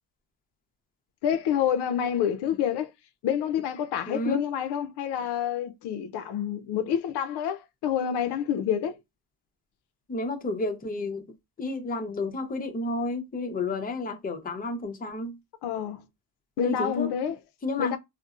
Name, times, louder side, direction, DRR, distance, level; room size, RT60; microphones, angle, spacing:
voice 1, 1.2-2.9 3.2-9.0 15.6-16.0 16.6-17.4 17.8-18.0, left 9 dB, 65° left, 0.5 m, -28 dB
voice 2, 4.1-4.4 10.1-11.2 11.6-15.4 16.6-17.1 17.6-17.9, left 2 dB, 20° left, 0.6 m, -31 dB
2.6 x 2.0 x 2.4 m
cardioid pair, 95°, 43 cm